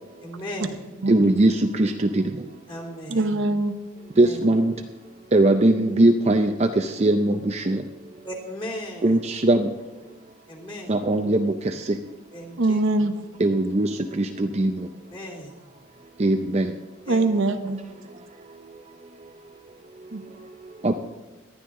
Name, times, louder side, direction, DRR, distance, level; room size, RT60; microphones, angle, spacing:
voice 1, 0.2-0.8 2.7-3.3 4.2-4.4 8.2-9.2 10.5-11.0 12.3-12.8 15.1-15.5 17.0-17.3, equal, 25° left, 1 dB, 2.9 m, -36 dB
voice 2, 1.1-2.4 4.2-4.7 5.3-8.2 9.0-9.7 10.9-12.0 13.4-14.9 16.2-16.7 18.1-19.3 19.9-20.9, right 2 dB, 30° right, 6 dB, 0.5 m, -22 dB
voice 3, 3.1-3.8 12.6-13.2 17.1-17.8 20.1-20.2, right 2 dB, 60° right, 7 dB, 0.9 m, -22 dB
18.5 x 11.5 x 3.7 m, 1.2 s
head